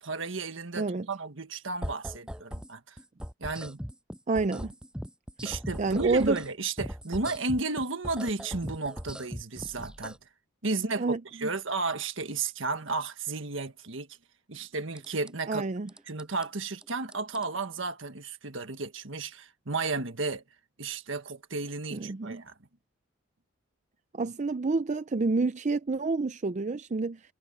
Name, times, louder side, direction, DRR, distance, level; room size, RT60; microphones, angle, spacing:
voice 1, 0.0-3.0 3.4-3.8 5.4-10.2 10.6-14.1 14.5-15.6 16.1-20.4 20.8-22.5, right 3 dB, 65° right, 1.7 m, -33 dB
sound 1, 1.8-2.7 3.0-6.5 6.8-10.2 15.0-15.3 15.9-16.5 16.8-17.5, equal, 5° right, 6.9 m, -40 dB
voice 2, 4.3-4.7 5.8-6.4 11.0-11.5 15.5-15.9 21.9-22.4 24.1-27.2, right 3 dB, 35° right, 0.5 m, -28 dB
head